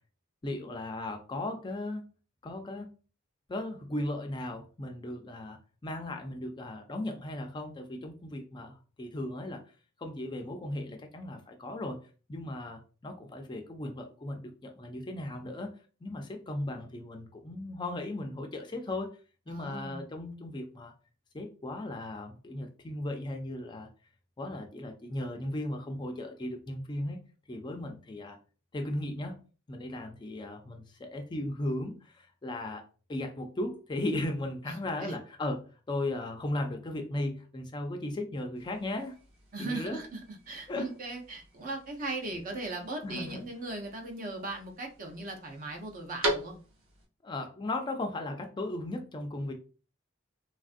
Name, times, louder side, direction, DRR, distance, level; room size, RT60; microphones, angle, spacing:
voice 1, 0.4-2.0 2.4-2.9 3.5-9.6 10.0-12.0 12.3-15.7 16.0-19.2 19.5-20.9 21.3-23.9 24.4-27.2 27.5-28.4 28.7-29.4 29.7-32.8 33.1-39.2 39.6-40.0 40.7-40.9 43.0-43.4 47.2-49.5, left 1 dB, 20° left, 4 dB, 0.3 m, -36 dB
voice 2, 19.5-20.0 34.7-35.2 39.5-40.2 40.5-46.6, right 2 dB, 40° right, 3 dB, 0.6 m, -38 dB
sound 1, 38.6-47.1, right 1 dB, 90° right, 1.0 m, -41 dB
3.2 x 2.4 x 2.5 m, 0.37 s
head